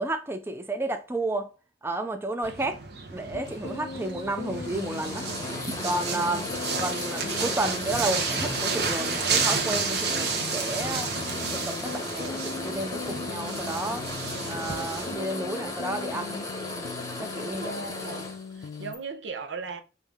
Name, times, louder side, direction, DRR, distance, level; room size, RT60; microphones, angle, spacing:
voice 1, 0.0-1.5 1.8-2.8 3.1-5.3 5.8-6.5 6.8-11.1 11.5-14.0 14.5-16.4 17.2-17.8, right 2 dB, 15° right, 0.4 m, -31 dB
sound 1, 2.4-15.1, right 5 dB, 65° right, 1.1 m, -32 dB
sound 2, 3.3-19.0, left 5 dB, 70° left, 0.4 m, -40 dB
sound 3, 3.5-19.0, left 2 dB, 20° left, 0.8 m, -36 dB
voice 2, 17.5-19.8, right 4 dB, 80° right, 0.8 m, -38 dB
5.4 x 2.7 x 3.4 m
head